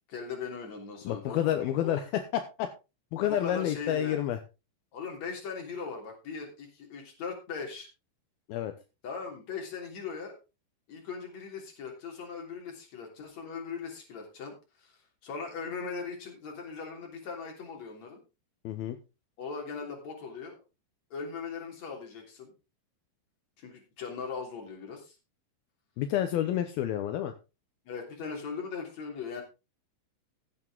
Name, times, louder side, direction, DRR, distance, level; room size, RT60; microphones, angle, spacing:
voice 1, 0.1-2.0 3.3-4.2 4.9-7.9 9.0-10.4 10.9-18.2 19.4-20.6 21.1-22.5 23.6-25.2 27.9-29.4, left 5 dB, 40° left, 2 dB, 4.1 m, -39 dB
voice 2, 1.0-2.7 3.1-4.4 8.5-8.7 18.6-19.0 26.0-27.3, left 11 dB, 75° left, 7 dB, 2.3 m, -29 dB
15.5 x 8.7 x 3.7 m, 0.28 s
omnidirectional pair, 5.4 m